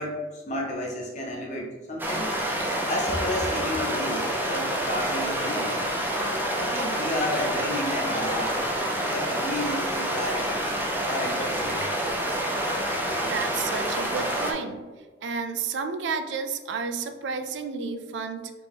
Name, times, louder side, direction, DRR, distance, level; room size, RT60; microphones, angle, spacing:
voice 1, 0.0-2.3 2.8-5.7 6.5-8.6 9.0-10.6 11.0-11.8, left 1 dB, 40° left, -2 dB, 0.8 m, -32 dB
sound 1, 2.0-14.5, right 1 dB, 10° right, 0.4 m, -28 dB
voice 2, 13.2-14.9 15.2-18.5, right 5 dB, 85° right, 8 dB, 0.4 m, -31 dB
3.4 x 2.9 x 3.3 m, 1.4 s
head